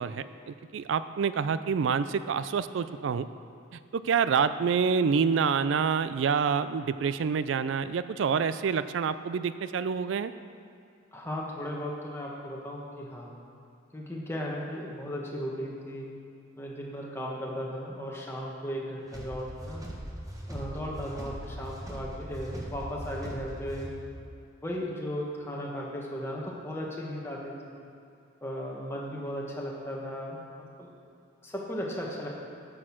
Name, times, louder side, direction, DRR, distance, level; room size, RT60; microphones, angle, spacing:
voice 1, 0.0-3.3 3.9-10.3, right 6 dB, 70° right, 13 dB, 0.4 m, -27 dB
voice 2, 11.1-13.3 13.9-16.1 16.6-19.8 20.5-23.9 24.6-27.8 28.4-30.4 30.8-30.9 31.4-32.3, equal, 15° left, -3 dB, 1.3 m, -36 dB
sound 1, 19.1-24.2, equal, 20° right, 1.1 m, -40 dB
9.1 x 6.4 x 6.0 m, 2.5 s
head